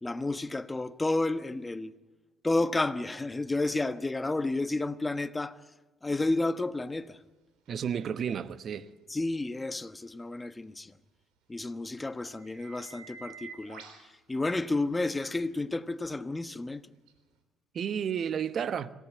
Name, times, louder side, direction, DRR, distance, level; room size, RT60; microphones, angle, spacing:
voice 1, 0.0-1.9 2.4-5.6 6.0-7.2 9.1-10.9 11.5-16.8, left 2 dB, 20° left, 1.2 m, -31 dB
voice 2, 7.7-8.9 17.7-18.9, right 8 dB, 55° right, 1.0 m, -32 dB
sound 1, 7.7-7.8 11.7-11.8 12.2-14.1 15.3-15.5 17.1-17.2, right 5 dB, 75° right, 3.8 m, -48 dB
27.0 x 17.5 x 8.4 m
hypercardioid pair, 55°, 0 cm